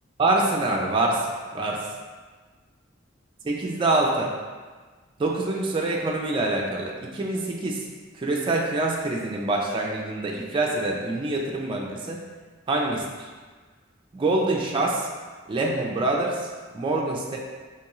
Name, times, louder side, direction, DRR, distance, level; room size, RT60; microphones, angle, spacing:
voice 1, 0.2-1.3 1.5-1.8 3.4-4.3 5.2-7.8 8.1-12.2 12.7-13.1 14.1-15.1 15.5-16.5 16.7-17.4, right 2 dB, 25° right, -2 dB, 0.3 m, -25 dB
3.4 x 3.0 x 3.0 m, 1.4 s
head